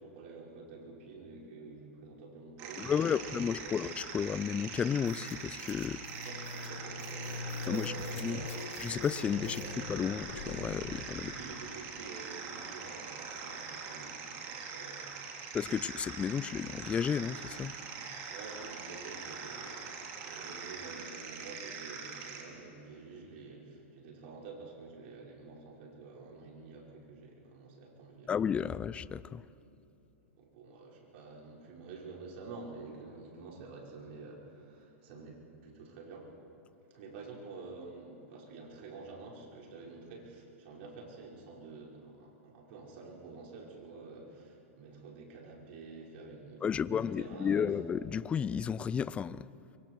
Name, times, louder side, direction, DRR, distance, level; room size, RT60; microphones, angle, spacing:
voice 1, 0.0-3.8 6.2-8.7 9.4-9.8 11.0-15.3 18.3-28.4 30.4-36.3 36.9-47.7, right 4 dB, 55° right, 5.2 m, -48 dB
sound 1, 2.6-22.4, right 6 dB, 40° right, 3.1 m, -43 dB
voice 2, 2.8-6.0 7.7-7.9 8.2-8.4 8.8-9.6 9.9-11.3 15.5-17.7 28.3-29.4 46.6-49.5, left 7 dB, 15° left, 0.4 m, -32 dB
sound 2, 5.1-11.4, left 4 dB, 85° left, 5.7 m, -43 dB
25.0 x 23.5 x 4.7 m
hypercardioid pair, 135°, 7 cm